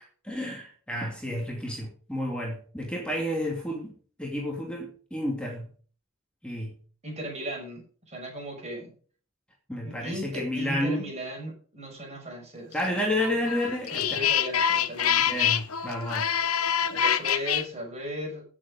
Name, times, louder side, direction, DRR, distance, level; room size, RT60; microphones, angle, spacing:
voice 1, 0.2-3.9 4.2-5.7 6.4-6.7 9.7-11.0 12.7-14.2 15.2-16.3, left 1 dB, 5° left, -1 dB, 2.5 m, -31 dB
voice 2, 7.0-8.9 9.8-13.3 13.9-15.2 16.9-18.4, equal, 30° right, 1 dB, 6.2 m, -36 dB
sound 1, 13.0-17.6, left 9 dB, 85° left, 1.0 m, -25 dB
16.0 x 7.4 x 5.0 m, 0.42 s
head